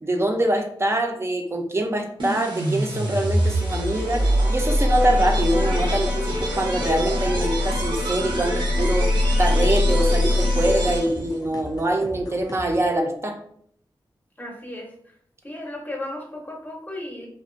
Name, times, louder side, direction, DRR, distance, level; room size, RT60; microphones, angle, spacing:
voice 1, 0.0-13.4, right 1 dB, 30° right, 3 dB, 0.5 m, -24 dB
sound 1, 2.2-11.3, left 1 dB, 65° right, 0.6 m, -23 dB
sound 2, 5.4-13.0, left 1 dB, 45° left, 0.3 m, -39 dB
voice 2, 14.4-14.9 15.4-17.3, left 1 dB, 20° left, 0 dB, 0.7 m, -34 dB
2.4 x 2.2 x 2.5 m, 0.64 s
cardioid pair, 55°, 9 cm